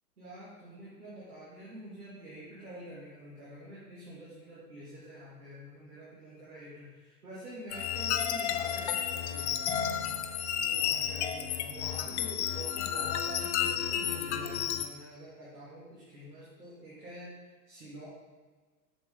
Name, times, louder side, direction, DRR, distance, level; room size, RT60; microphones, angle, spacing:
voice 1, 0.2-9.9 10.5-18.1, right 1 dB, 70° right, -7 dB, 2.5 m, -47 dB
sound 1, 7.7-14.9, left 9 dB, 45° left, 0.6 m, -32 dB
7.4 x 6.9 x 3.7 m, 1.4 s
figure-of-eight pair, 95°, 49 cm